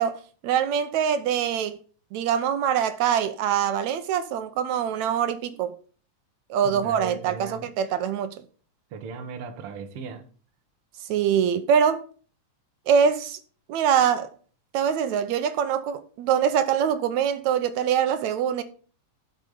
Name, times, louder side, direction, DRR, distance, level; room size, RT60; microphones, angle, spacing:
voice 1, 0.0-1.8 2.1-5.7 6.5-8.4 11.1-12.0 12.9-13.4 13.7-14.3 14.7-18.6, right 8 dB, 75° right, 2.0 m, -24 dB
voice 2, 6.6-7.7 8.9-10.2, right 5 dB, 55° right, 1.9 m, -37 dB
11.0 x 6.4 x 5.5 m
omnidirectional pair, 3.6 m